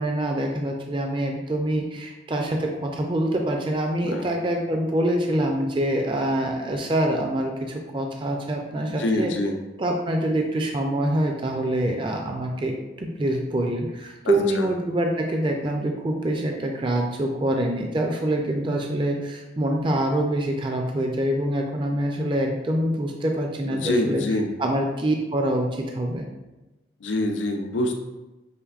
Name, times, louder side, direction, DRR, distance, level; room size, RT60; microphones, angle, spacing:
voice 1, 0.0-9.3 9.8-24.2 24.6-26.3, right 1 dB, 25° right, 2 dB, 0.3 m, -25 dB
voice 2, 9.0-9.6 14.2-14.7 23.7-24.5 27.0-27.9, left 1 dB, 90° left, 4 dB, 0.6 m, -25 dB
5.7 x 3.3 x 2.4 m, 1.1 s
head